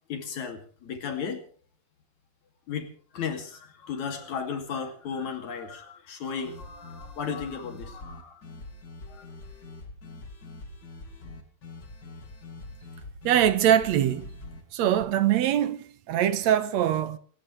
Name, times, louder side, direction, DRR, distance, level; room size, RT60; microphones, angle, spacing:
voice 1, 0.1-1.4 2.7-8.4 9.1-9.3, left 6 dB, 75° left, 4.0 m, -35 dB
sound 1, 6.4-15.1, left 2 dB, 40° left, 2.8 m, -44 dB
voice 2, 13.2-14.3 14.7-17.2, right 11 dB, 75° right, 2.1 m, -23 dB
28.5 x 15.0 x 3.3 m
omnidirectional pair, 3.3 m